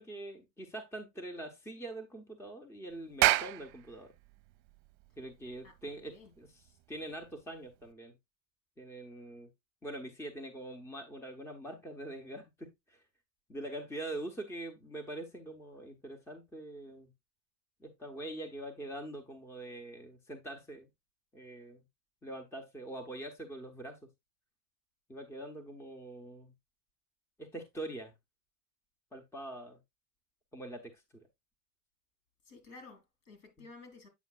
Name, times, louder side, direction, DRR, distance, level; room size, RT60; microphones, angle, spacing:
voice 1, 0.0-4.1 5.2-8.1 8.8-9.5 9.8-13.0 13.5-17.1 17.8-20.9 21.3-21.8 22.2-24.0 25.1-26.5 27.4-28.1 29.1-29.8 30.5-31.2 33.6-33.7, right 1 dB, 5° left, 0.7 m, -44 dB
Clapping, 3.0-7.9, right 18 dB, 55° right, 0.7 m, -33 dB
voice 2, 5.6-6.3 32.4-34.1, left 3 dB, 60° left, 3.2 m, -53 dB
8.3 x 5.6 x 2.3 m
supercardioid pair, 120°, 45 cm